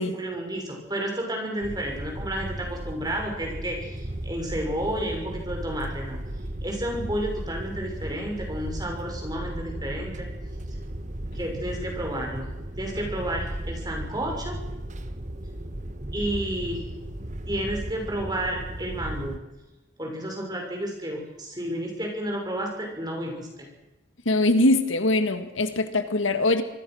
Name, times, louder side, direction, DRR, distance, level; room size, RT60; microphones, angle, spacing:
voice 1, 0.0-6.2 6.6-10.3 11.3-12.5 12.8-14.5 16.1-16.8 17.5-19.4 20.0-23.7, right 1 dB, 20° right, 1 dB, 6.2 m, -31 dB
sound 1, 1.6-19.4, right 1 dB, 35° right, 1.3 m, -35 dB
voice 2, 24.3-26.6, left 2 dB, 75° left, 9 dB, 1.8 m, -22 dB
26.5 x 20.0 x 6.4 m, 0.98 s
head